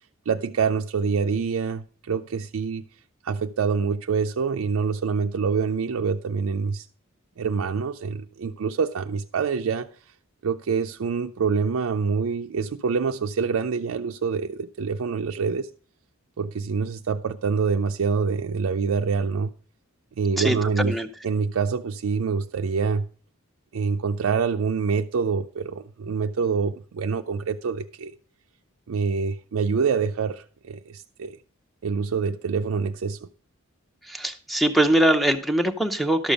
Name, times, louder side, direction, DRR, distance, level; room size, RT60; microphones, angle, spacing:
voice 1, 0.3-2.8 3.2-6.9 7.4-9.9 10.4-15.7 16.4-19.5 20.2-20.9 21.2-23.0 23.7-28.1 28.9-31.3 31.8-33.3, right 5 dB, 85° right, 0.4 m, -26 dB
voice 2, 20.4-21.1 34.0-36.3, right 1 dB, ahead, 0.6 m, -22 dB
12.0 x 6.9 x 5.1 m
head